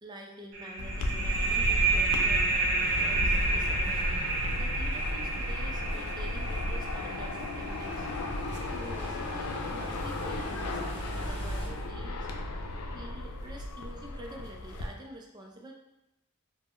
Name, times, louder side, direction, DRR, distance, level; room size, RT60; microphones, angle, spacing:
voice 1, 0.0-4.2 4.5-8.1 8.7-12.3 12.9-15.7, right 1 dB, 20° right, 0 dB, 0.3 m, -47 dB
sound 1, 0.5-9.8, right 3 dB, 75° right, 0.6 m, -31 dB
sound 2, 0.8-14.9, left 1 dB, 85° left, 0.4 m, -34 dB
sound 3, 2.8-11.7, equal, 50° left, 0.9 m, -43 dB
2.4 x 2.1 x 3.5 m, 0.90 s
head